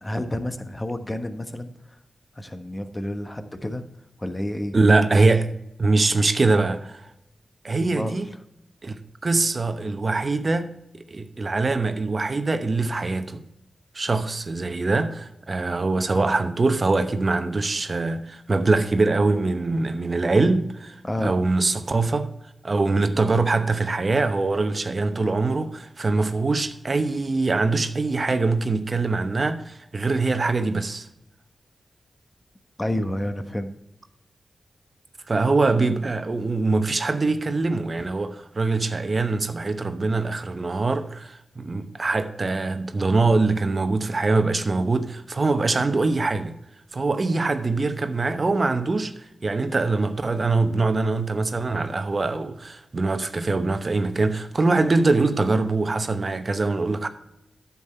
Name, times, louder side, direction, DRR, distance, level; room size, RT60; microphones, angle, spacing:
voice 1, 0.0-1.7 2.4-3.8 4.2-4.8 7.8-8.2 21.0-21.3 32.8-33.7 38.0-38.1, left 1 dB, 25° left, 1.3 m, -29 dB
voice 2, 4.7-5.5 5.8-7.1 7.6-8.3 8.8-13.4 13.9-22.3 22.6-31.1 35.3-46.5 46.9-57.1, right 3 dB, 50° right, 0.9 m, -23 dB
9.7 x 7.2 x 4.3 m
cardioid pair, 40°, 0 cm